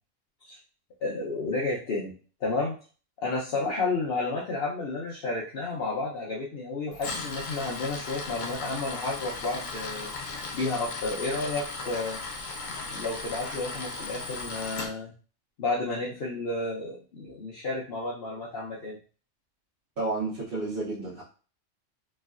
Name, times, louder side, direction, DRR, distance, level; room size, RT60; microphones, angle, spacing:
voice 1, 1.0-2.1 2.4-2.8 3.2-10.1 10.5-12.2 12.7-15.1 15.6-19.0, left 3 dB, 55° left, -5 dB, 0.8 m, -31 dB
Tools, 6.9-14.9, left 3 dB, 85° left, 1.1 m, -36 dB
voice 2, 20.0-21.2, right 2 dB, 50° right, -9 dB, 1.1 m, -31 dB
3.1 x 2.6 x 2.4 m, 0.38 s
omnidirectional pair, 1.3 m